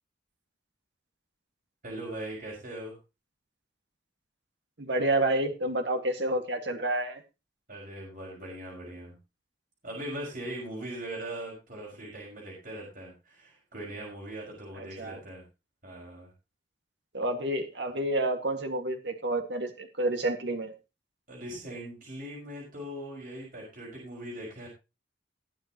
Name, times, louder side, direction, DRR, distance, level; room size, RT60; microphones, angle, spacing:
voice 1, 1.8-3.0 7.7-9.2 9.8-15.4 15.8-16.3 21.3-24.7, right 1 dB, 50° right, -4 dB, 6.0 m, -40 dB
voice 2, 4.8-7.2 14.8-15.2 17.1-20.7, right 1 dB, 65° right, 5 dB, 2.1 m, -29 dB
19.5 x 8.0 x 3.0 m, 0.28 s
head